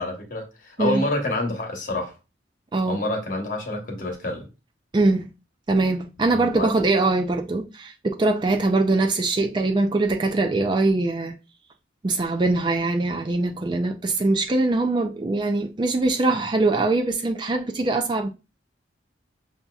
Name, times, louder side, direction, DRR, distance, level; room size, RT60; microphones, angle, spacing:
voice 1, 0.0-2.1 2.8-4.5 6.3-6.7, left 2 dB, 45° left, 1.1 m, -28 dB
voice 2, 2.7-3.0 4.9-5.3 5.7-11.4 12.0-18.3, right 2 dB, 25° right, 0.3 m, -22 dB
6.9 x 2.7 x 2.3 m
head